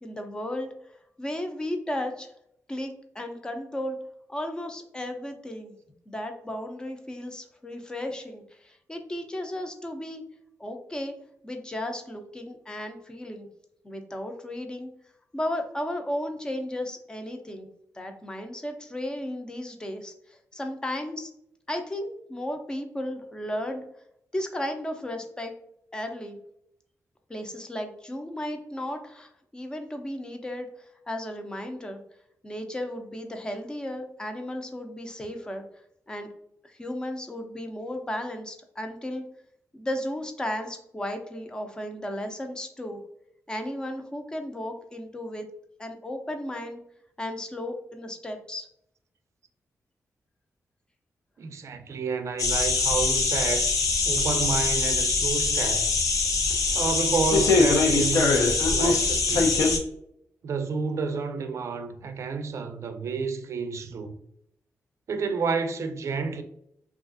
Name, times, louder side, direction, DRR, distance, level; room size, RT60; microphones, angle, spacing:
voice 1, 0.0-0.7 1.2-2.3 2.7-4.0 4.3-5.7 6.1-10.2 10.6-11.1 11.4-13.5 13.8-14.9 15.3-17.7 17.9-21.3 21.7-23.8 24.3-25.5 25.9-26.4 27.3-32.0 32.4-35.6 36.1-36.3 36.6-39.2 39.7-43.0 43.5-45.5 45.8-46.8 47.2-48.7, left 1 dB, 15° left, 0.4 m, -34 dB
voice 2, 51.4-53.7 54.1-55.9 56.7-59.6 60.4-64.2 65.1-66.4, right 5 dB, 60° right, 0.4 m, -30 dB
sound 1, 52.4-59.8, left 3 dB, 85° left, 0.6 m, -23 dB
3.3 x 2.4 x 2.5 m
wide cardioid pair, 155°, 6 cm